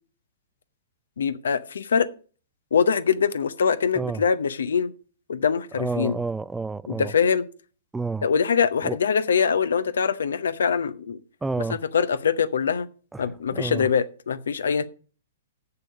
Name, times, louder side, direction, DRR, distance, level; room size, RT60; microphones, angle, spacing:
voice 1, 1.2-2.1 2.7-4.9 5.3-6.2 6.9-7.4 8.2-11.2 11.9-12.9 13.2-14.8, left 6 dB, 70° left, 0.8 m, -23 dB
voice 2, 5.7-7.1 7.9-8.3 8.8-9.0 11.4-11.8 13.1-13.9, right 3 dB, 5° right, 0.3 m, -30 dB
6.9 x 6.8 x 7.3 m
figure-of-eight pair, 115°, 0 cm